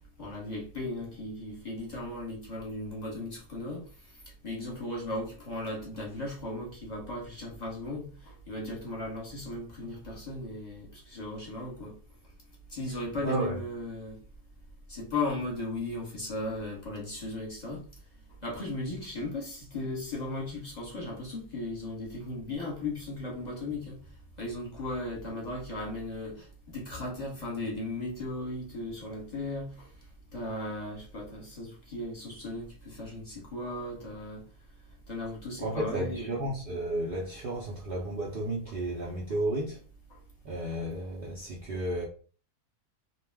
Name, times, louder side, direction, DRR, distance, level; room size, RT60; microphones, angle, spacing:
voice 1, 0.2-3.8 4.4-11.9 12.7-14.2 14.9-17.8 18.4-24.0 24.4-29.9 30.3-34.4 35.1-36.3 39.0-39.1 40.1-40.2, left 2 dB, 30° left, 1.0 m, -36 dB
voice 2, 13.2-13.5 35.6-39.8 40.4-42.0, right 1 dB, 85° right, 0.4 m, -32 dB
2.5 x 2.2 x 3.3 m
omnidirectional pair, 1.7 m